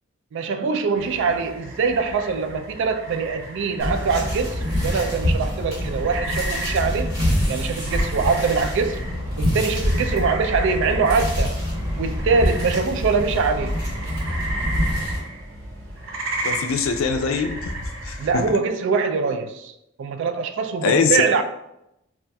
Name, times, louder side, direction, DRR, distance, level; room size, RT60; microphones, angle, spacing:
voice 1, 0.3-7.1 7.5-9.0 9.4-11.5 12.0-13.7 18.2-19.7 20.0-21.4, right 5 dB, 65° right, 0.3 m, -23 dB
sound 1, 1.0-18.6, right 1 dB, 80° right, 0.7 m, -34 dB
sound 2, 3.8-15.2, equal, 45° right, 1.5 m, -25 dB
voice 2, 16.4-17.7 18.0-18.6 20.8-21.2, left 5 dB, 85° left, 0.4 m, -22 dB
4.0 x 2.4 x 2.2 m
head